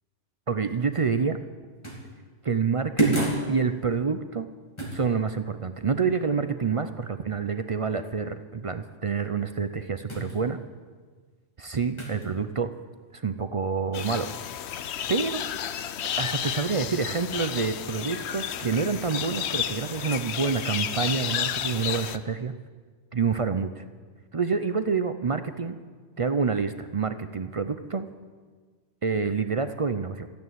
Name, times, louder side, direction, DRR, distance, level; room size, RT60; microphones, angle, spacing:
voice 1, 0.5-1.4 2.4-4.5 4.9-10.6 11.6-12.7 13.1-14.3 15.1-15.4 16.2-22.5 23.1-23.8 24.3-25.8 26.2-28.0 29.0-30.3, right 5 dB, 45° right, 10 dB, 0.4 m, -27 dB
sound 1, 1.8-2.1 3.0-3.5 4.8-5.0 10.1-10.4 12.0-12.3, right 2 dB, 25° left, 2.6 m, -27 dB
sound 2, 13.9-22.2, left 9 dB, 70° left, 0.9 m, -32 dB
14.0 x 9.5 x 9.1 m, 1.5 s
omnidirectional pair, 1.2 m